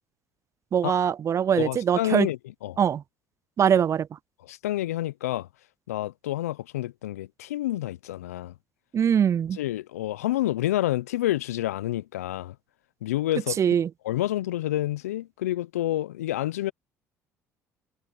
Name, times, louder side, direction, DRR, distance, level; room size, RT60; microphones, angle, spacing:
voice 1, 0.7-2.3 2.8-3.0 3.6-4.1 8.9-9.6 13.6-13.9, right 8 dB, 40° right, 0.4 m, -22 dB
voice 2, 1.6-2.8 4.4-5.5 5.9-8.5 9.6-12.5 13.0-13.6 14.0-16.7, left 14 dB, 85° left, 0.9 m, -28 dB
hypercardioid pair, 55°, 8 cm